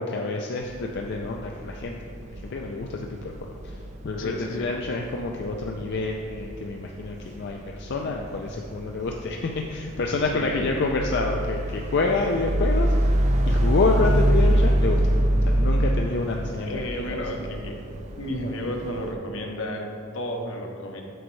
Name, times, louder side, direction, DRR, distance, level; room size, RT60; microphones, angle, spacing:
voice 1, 0.0-1.9 2.4-3.3 4.0-13.1 13.5-15.0 15.5-17.2, left 3 dB, 55° left, 1 dB, 0.4 m, -28 dB
sound 1, 0.6-19.1, right 1 dB, 35° right, 0.4 m, -26 dB
voice 2, 4.2-4.7 10.2-10.7 16.7-17.8 18.2-21.0, equal, 75° left, 2 dB, 0.9 m, -32 dB
7.9 x 6.1 x 3.2 m, 2.4 s
head